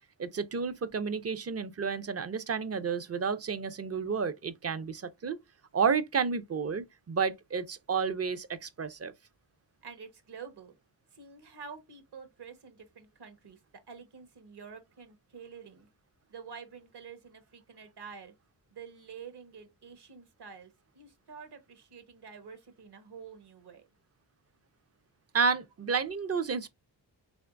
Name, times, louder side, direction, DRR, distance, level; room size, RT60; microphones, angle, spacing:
voice 1, 0.2-5.4 5.7-9.1 25.3-26.7, right 5 dB, 35° right, 0.5 m, -31 dB
voice 2, 9.8-10.7 11.1-13.6 13.9-15.9 16.3-18.3 18.7-23.8, right 6 dB, 60° right, 1.2 m, -48 dB
3.5 x 3.1 x 2.5 m
cardioid pair, 75°, 45 cm